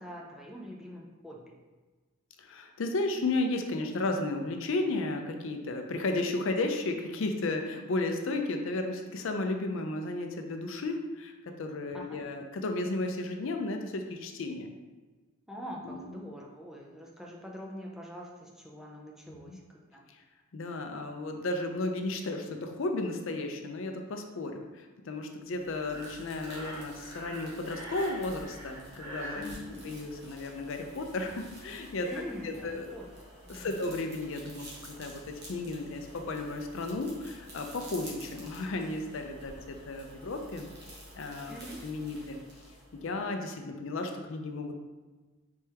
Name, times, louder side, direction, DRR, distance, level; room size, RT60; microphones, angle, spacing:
voice 1, 0.0-1.5 11.9-12.3 15.5-19.6 19.9-20.1 29.3-29.9 32.0-33.1 33.5-33.9 41.5-41.8, equal, ahead, -2 dB, 0.4 m, -44 dB
voice 2, 2.4-14.7 15.8-16.1 19.3-19.6 20.5-29.5 29.8-32.1 32.4-33.0 33.5-35.2 35.5-42.4 43.0-44.7, left 2 dB, 60° left, 4 dB, 0.4 m, -34 dB
sound 1, 25.5-43.3, right 1 dB, 50° right, 1.1 m, -50 dB
Breathing, 25.8-29.5, right 1 dB, 80° right, 1.1 m, -43 dB
4.2 x 3.3 x 3.3 m, 1.3 s
head